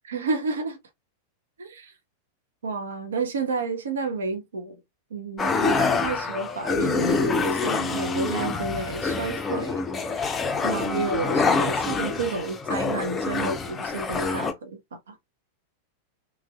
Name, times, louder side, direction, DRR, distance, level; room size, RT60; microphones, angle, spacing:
voice 1, 0.1-0.8 1.6-1.9 2.6-4.8 5.1-9.8 10.6-15.1, right 4 dB, 65° right, 0.6 m, -30 dB
sound 1, 5.4-14.5, left 4 dB, 20° left, 0.4 m, -26 dB
3.0 x 2.5 x 2.3 m
figure-of-eight pair, 90°, 0 cm